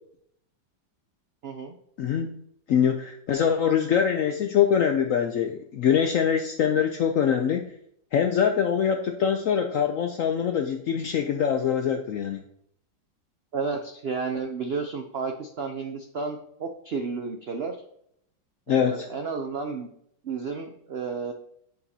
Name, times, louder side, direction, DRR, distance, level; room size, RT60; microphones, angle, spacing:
voice 1, 1.4-1.7 13.5-17.8 18.7-19.9 20.2-21.3, right 4 dB, 85° right, 5 dB, 0.5 m, -32 dB
voice 2, 2.0-2.4 2.7-7.7 8.1-12.4 18.7-19.1, left 8 dB, 75° left, 5 dB, 0.7 m, -24 dB
9.6 x 5.2 x 2.7 m, 0.71 s
omnidirectional pair, 1.9 m